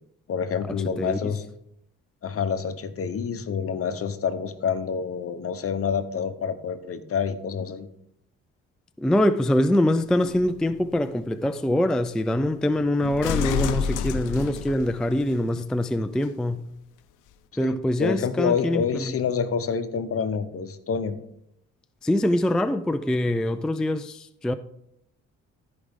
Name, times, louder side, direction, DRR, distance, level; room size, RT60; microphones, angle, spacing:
voice 1, 0.3-1.4 2.2-7.9 17.6-21.2, left 6 dB, 50° left, 1.0 m, -27 dB
voice 2, 9.0-16.7 17.6-19.1 22.0-24.5, left 1 dB, ahead, 0.3 m, -24 dB
sound 1, 10.1-15.4 16.2-16.3, left 7 dB, 90° left, 0.6 m, -32 dB
14.5 x 4.9 x 3.7 m
cardioid pair, 90°, 30 cm